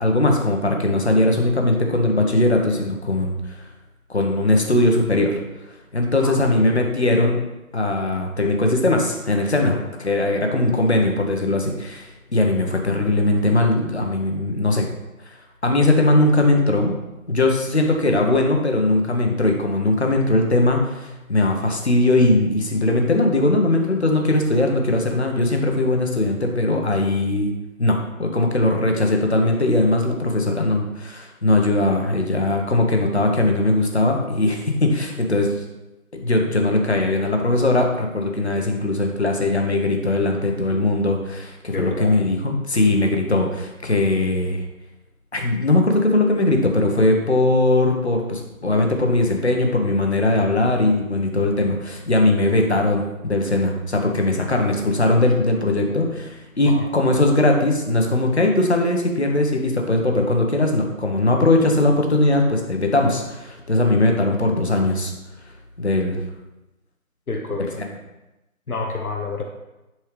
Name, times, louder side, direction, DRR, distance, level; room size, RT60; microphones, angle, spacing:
voice 1, 0.0-3.6 4.1-5.4 5.9-7.4 7.7-14.9 15.3-15.4 15.6-16.9 17.3-27.5 27.8-35.5 36.1-44.6 45.3-65.1 65.8-66.2, left 2 dB, 50° left, 2 dB, 1.2 m, -20 dB
voice 2, 6.2-6.9 9.6-9.8 41.7-42.2 55.8-56.2 56.6-56.9 67.3-67.9 68.7-69.4, left 3 dB, 80° left, 1 dB, 1.2 m, -29 dB
10.5 x 4.4 x 3.4 m, 1.0 s
figure-of-eight pair, 175°, 44 cm